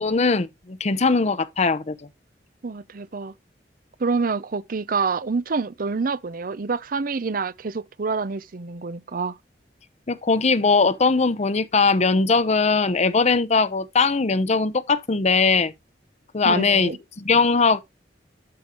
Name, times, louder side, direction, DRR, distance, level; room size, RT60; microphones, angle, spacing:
voice 1, 0.0-2.0 10.1-15.7 16.3-17.8, left 4 dB, 40° left, 0.7 m, -20 dB
voice 2, 2.6-3.3 4.0-9.4 16.4-17.0, right 4 dB, 50° right, 0.6 m, -27 dB
12.5 x 5.3 x 3.0 m
head